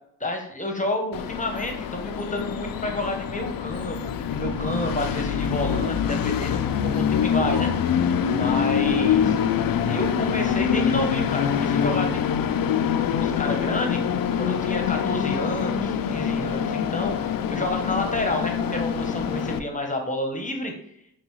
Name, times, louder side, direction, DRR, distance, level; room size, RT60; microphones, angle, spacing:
voice 1, 0.2-7.9 8.3-9.4 9.9-12.5 13.1-20.7, left 1 dB, 20° left, 3 dB, 0.9 m, -30 dB
Train, 1.1-19.6, left 8 dB, 55° left, 0.5 m, -25 dB
5.3 x 2.3 x 3.1 m, 0.73 s
supercardioid pair, 45°, 41 cm